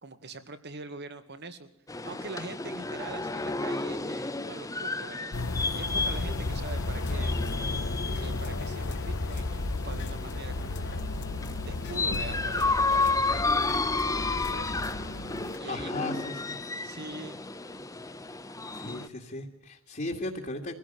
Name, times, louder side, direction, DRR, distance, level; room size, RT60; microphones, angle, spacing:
voice 1, 0.0-1.7 2.0-7.4 8.1-11.1 11.6-14.8 15.6-16.0 16.6-17.4, right 3 dB, 55° right, 9 dB, 2.1 m, -43 dB
sound 1, 1.9-19.1, left 3 dB, 15° left, 1.0 m, -32 dB
sound 2, 5.3-15.5, left 2 dB, 80° left, 1.2 m, -34 dB
sound 3, 6.9-15.6, left 2 dB, 60° left, 2.1 m, -43 dB
voice 2, 15.7-16.6 18.7-20.7, left 2 dB, 40° left, 0 dB, 2.4 m, -36 dB
24.5 x 16.0 x 9.3 m, 0.69 s
head